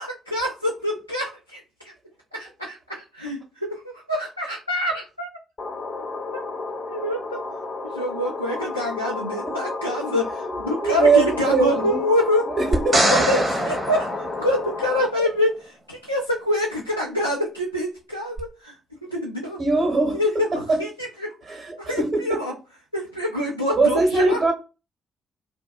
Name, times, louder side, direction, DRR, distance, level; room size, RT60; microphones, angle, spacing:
voice 1, 0.0-1.9 2.3-5.3 6.3-6.4 6.9-7.4 7.8-12.5 13.0-18.7 19.1-19.6 20.1-22.5 22.9-24.4, left 1 dB, 90° left, 0.3 m, -26 dB
sound 1, 5.6-15.0, left 3 dB, 40° left, 0.7 m, -32 dB
voice 2, 10.8-12.0 12.6-13.0 15.2-15.3 19.6-20.8 21.5-22.4 23.7-24.5, right 3 dB, 45° right, 1.2 m, -21 dB
sound 2, 12.7-15.0 18.4-18.5, right 1 dB, 25° right, 0.9 m, -23 dB
2.5 x 2.2 x 2.6 m
figure-of-eight pair, 40°, 0 cm